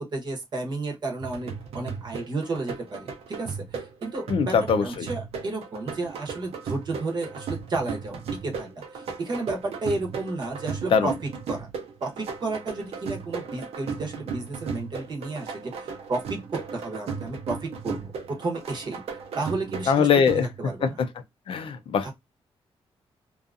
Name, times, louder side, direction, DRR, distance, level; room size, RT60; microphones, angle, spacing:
voice 1, 0.0-4.6 4.8-11.1 11.5-11.7 12.0-16.4 16.7-19.0 19.3-20.1 20.6-21.0 22.0-22.1, right 3 dB, 45° right, 0.9 m, -32 dB
sound 1, 1.2-20.9, right 5 dB, 80° right, 0.7 m, -36 dB
voice 2, 4.3-5.1 10.9-11.1 19.9-20.5 20.8-21.1 21.5-22.1, left 6 dB, 60° left, 0.5 m, -22 dB
2.6 x 2.4 x 2.3 m
cardioid pair, 120°, 10 cm